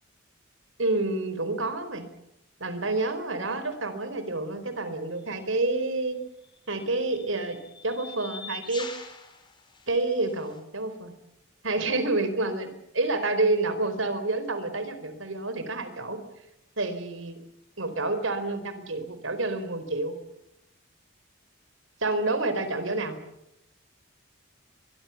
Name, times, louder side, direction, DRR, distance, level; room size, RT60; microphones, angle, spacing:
voice 1, 0.8-2.0 2.6-6.2 6.7-7.6 7.8-8.9 9.9-11.1 11.6-12.7 12.9-16.2 16.8-17.4 17.8-20.1 22.0-23.2, right 2 dB, 70° right, 10 dB, 4.4 m, -28 dB
sound 1, 5.2-5.4 6.4-10.6, left 5 dB, 20° left, 3.9 m, -45 dB
23.5 x 22.5 x 7.2 m, 0.84 s
head